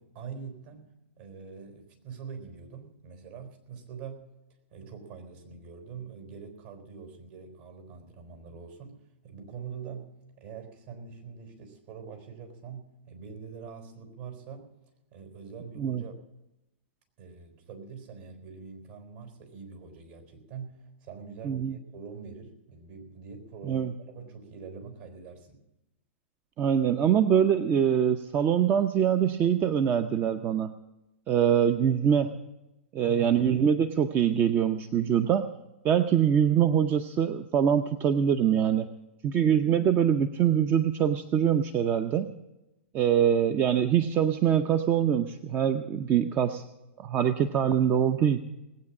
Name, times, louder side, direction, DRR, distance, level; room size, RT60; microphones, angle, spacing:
voice 1, 0.0-4.3 4.7-9.0 9.2-10.1 10.4-14.7 15.1-16.1 17.2-25.6 33.0-33.5, right 6 dB, 55° right, 5 dB, 4.1 m, -44 dB
voice 2, 21.4-21.8 23.7-23.9 26.6-30.8 31.3-32.3 32.9-35.4 35.8-38.9 39.2-42.3 42.9-46.6 47.0-48.4, right 8 dB, 30° right, 9 dB, 0.7 m, -24 dB
19.0 x 8.8 x 7.2 m, 0.96 s
hypercardioid pair, 120°, 7 cm